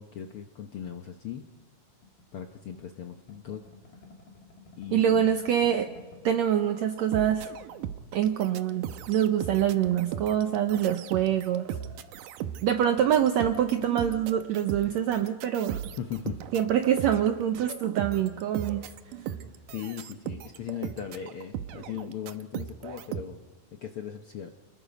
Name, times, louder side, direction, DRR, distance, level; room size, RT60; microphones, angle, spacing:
voice 1, 0.0-1.5 2.3-3.6 4.8-5.3 16.0-16.4 19.7-23.4 23.7-24.5, left 9 dB, 70° left, 5 dB, 1.3 m, -38 dB
sound 1, 2.0-6.6 6.9-7.0 7.3-7.9, left 3 dB, 90° left, 4.1 m, -52 dB
voice 2, 4.9-5.9 6.2-7.5 8.1-11.7 12.6-15.8 16.5-18.9, right 10 dB, 70° right, 6 dB, 1.9 m, -25 dB
sound 2, 7.0-23.2, right 10 dB, 85° right, 2.5 m, -38 dB
29.0 x 20.5 x 5.3 m, 1.3 s
omnidirectional pair, 3.7 m